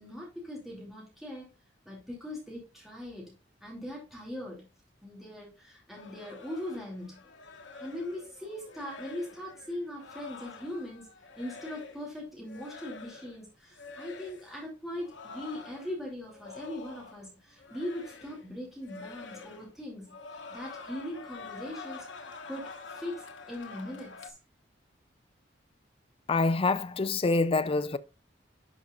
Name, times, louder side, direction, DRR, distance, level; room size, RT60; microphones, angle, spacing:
voice 1, 0.0-1.5 1.8-3.3 3.6-4.7 5.0-7.2 7.8-11.1 11.4-24.4, left 1 dB, ahead, 2.7 m, -40 dB
sound 1, 5.9-12.1 12.5-13.4 13.7-14.5 15.0-17.3 17.6-18.5 18.8-19.8 20.1-24.3, left 4 dB, 85° left, 1.2 m, -47 dB
voice 2, 26.3-28.0, left 3 dB, 30° left, 0.5 m, -26 dB
11.0 x 5.3 x 2.4 m
head